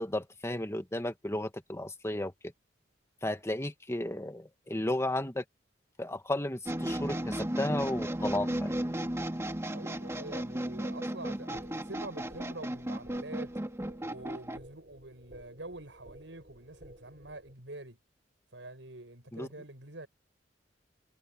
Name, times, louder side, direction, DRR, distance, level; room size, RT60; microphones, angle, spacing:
voice 1, 0.0-2.3 3.2-5.4 6.0-8.7 19.3-19.5, left 1 dB, 15° left, 1.5 m, -34 dB
sound 1, 6.7-14.6, right 1 dB, 15° right, 1.9 m, -35 dB
voice 2, 9.7-13.5 14.0-18.0 18.5-20.1, right 2 dB, 85° right, 7.3 m, -46 dB
sound 2, 11.5-17.5, right 1 dB, 45° right, 5.4 m, -55 dB
head